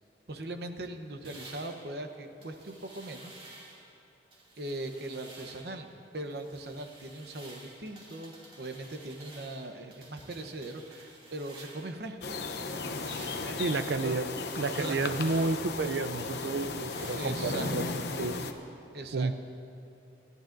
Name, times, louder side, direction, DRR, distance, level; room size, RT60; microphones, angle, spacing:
voice 1, 0.3-3.3 4.6-12.4 13.4-13.6 14.0-14.2 14.7-15.0 17.2-17.7 18.9-19.3, right 1 dB, 65° right, 6 dB, 0.9 m, -40 dB
sound 1, 1.2-3.9 4.3-5.8 6.1-12.0 12.4-18.0, right 2 dB, 30° right, 2.3 m, -52 dB
sound 2, 12.2-18.5, left 3 dB, 70° left, 0.7 m, -35 dB
voice 2, 13.6-14.3 14.6-17.9 18.2-18.4 19.1-19.3, right 3 dB, 80° right, 12 dB, 0.5 m, -31 dB
28.5 x 11.0 x 2.6 m, 2.8 s
head